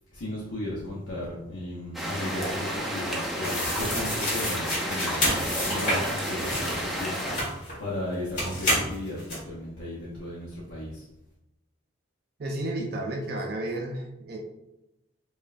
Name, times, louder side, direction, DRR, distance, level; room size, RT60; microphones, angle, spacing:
voice 1, 0.1-11.0, left 1 dB, 65° left, -7 dB, 0.8 m, -35 dB
sound 1, 1.9-7.4, equal, ahead, 0.6 m, -31 dB
sound 2, 3.4-7.8 8.4-9.4, left 1 dB, 35° left, 1.4 m, -29 dB
voice 2, 12.4-14.4, right 1 dB, 50° right, 1 dB, 0.5 m, -32 dB
5.1 x 2.4 x 2.5 m, 0.89 s
head